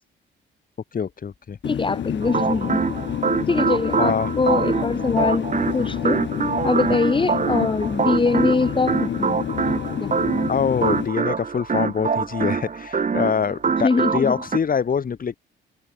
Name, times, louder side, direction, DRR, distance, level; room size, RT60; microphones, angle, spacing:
voice 1, 0.9-1.6 4.0-4.3 10.5-15.4, left 6 dB, 45° left, 5.0 m, -24 dB
sound 1, 1.6-11.1, left 10 dB, 65° left, 6.1 m, -29 dB
voice 2, 1.6-2.8 3.5-6.2 6.6-9.4 10.0-10.2 13.8-14.4, left 4 dB, 25° left, 3.3 m, -23 dB
sound 2, 2.2-14.6, right 5 dB, 40° right, 5.3 m, -25 dB
cardioid pair, 90°, 20 cm